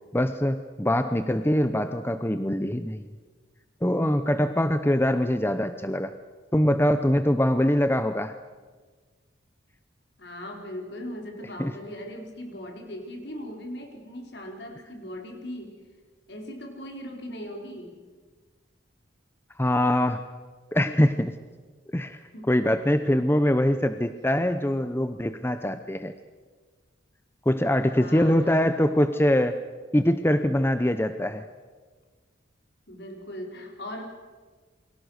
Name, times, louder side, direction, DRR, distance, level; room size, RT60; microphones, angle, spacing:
voice 1, 0.1-3.0 3.8-6.1 6.5-8.3 11.6-11.7 19.6-20.2 20.7-21.3 21.9-22.2 22.5-26.1 27.5-29.6 29.9-31.5, left 1 dB, 10° left, 9 dB, 0.8 m, -23 dB
voice 2, 10.2-15.8 16.3-18.0 22.3-22.6 28.0-28.6 32.9-34.0, left 1 dB, 60° left, 2 dB, 4.6 m, -39 dB
29.0 x 23.0 x 6.6 m, 1.4 s
head